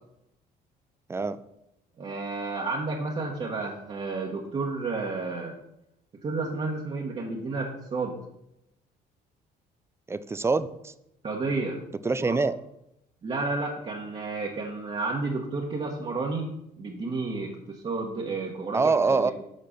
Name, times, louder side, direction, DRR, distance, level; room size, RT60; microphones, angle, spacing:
voice 1, 2.0-5.5 6.2-8.1 11.2-11.8 12.2-12.3 13.2-16.5 16.8-19.3, right 3 dB, 35° right, -3 dB, 1.4 m, -31 dB
voice 2, 10.1-10.9 12.0-12.6 18.7-19.3, right 4 dB, 15° right, 14 dB, 0.4 m, -24 dB
7.7 x 4.4 x 6.7 m, 0.83 s
cardioid pair, 110°, 17 cm